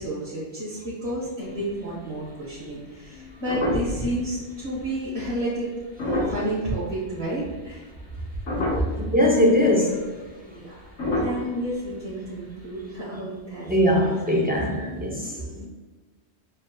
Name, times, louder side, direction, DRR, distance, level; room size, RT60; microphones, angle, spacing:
voice 1, 0.0-5.7 6.2-7.8 10.4-10.7 11.1-14.9, right 1 dB, 70° right, -9 dB, 1.5 m, -31 dB
sound 1, 1.4-2.1 2.6-2.7 3.1-4.2 4.6-4.8 5.8-7.2 7.7-8.1 8.4-9.1 9.5-9.6 9.8-10.0 10.9-12.5 12.7-12.8, left 1 dB, 90° left, 1.6 m, -29 dB
voice 2, 9.1-10.1 13.7-15.7, left 1 dB, 15° right, -2 dB, 0.3 m, -21 dB
7.2 x 2.7 x 2.2 m, 1.3 s
omnidirectional pair, 1.1 m